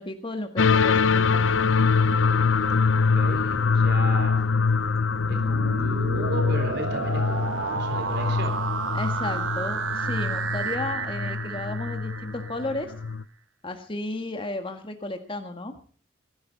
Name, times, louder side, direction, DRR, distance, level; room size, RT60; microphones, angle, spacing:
voice 1, 0.0-1.6 8.9-12.9 13.6-15.7, left 2 dB, 25° left, 6 dB, 1.7 m, -33 dB
sound 1, 0.6-13.2, left 5 dB, 75° left, 0.7 m, -24 dB
voice 2, 2.9-4.4 5.3-8.6, right 1 dB, 55° right, 5 dB, 3.7 m, -35 dB
sound 2, 5.1-12.8, right 5 dB, 85° right, 1.1 m, -32 dB
25.0 x 11.5 x 4.1 m, 0.43 s
head